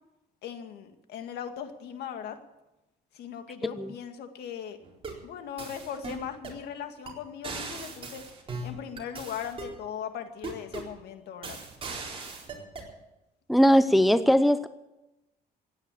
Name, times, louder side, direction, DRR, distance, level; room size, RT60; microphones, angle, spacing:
voice 1, 0.4-2.4 3.1-4.8 5.2-8.2 8.6-11.6, left 8 dB, 75° left, 7 dB, 2.0 m, -39 dB
voice 2, 3.6-3.9 13.5-14.7, equal, ahead, 12 dB, 0.7 m, -20 dB
sound 1, 4.8-5.2 5.6-6.6 7.1-7.2 7.4-9.8 10.4-11.0 11.4-12.9, right 3 dB, 35° right, 4.2 m, -39 dB
16.0 x 9.9 x 8.5 m, 0.95 s
cardioid pair, 110°, 17 cm